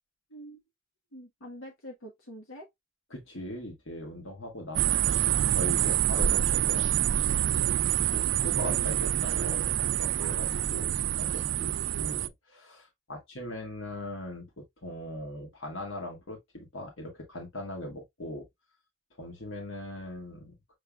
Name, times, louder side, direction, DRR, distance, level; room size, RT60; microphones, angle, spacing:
voice 1, 0.3-0.6 1.1-2.7 8.7-9.0, equal, 90° left, 1.3 m, -45 dB
voice 2, 3.1-6.9 8.0-9.6 9.9-18.4 19.2-20.7, left 1 dB, 70° left, 1.7 m, -40 dB
sound 1, 4.7-12.3, right 11 dB, 65° right, 0.3 m, -27 dB
6.6 x 3.4 x 2.3 m
head